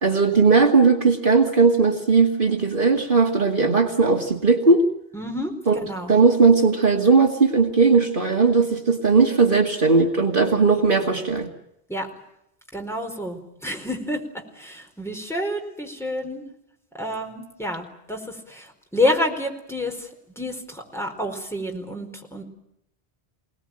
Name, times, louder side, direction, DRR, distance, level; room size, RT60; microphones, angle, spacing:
voice 1, 0.0-4.9 5.7-5.8 6.1-11.5, right 4 dB, 50° right, 3 dB, 2.4 m, -18 dB
voice 2, 5.1-6.1 11.9-12.1 12.7-14.2 14.5-16.4 17.0-20.1 20.4-22.4, left 1 dB, ahead, 2 dB, 4.5 m, -28 dB
26.5 x 19.0 x 9.0 m, 0.80 s
omnidirectional pair, 1.1 m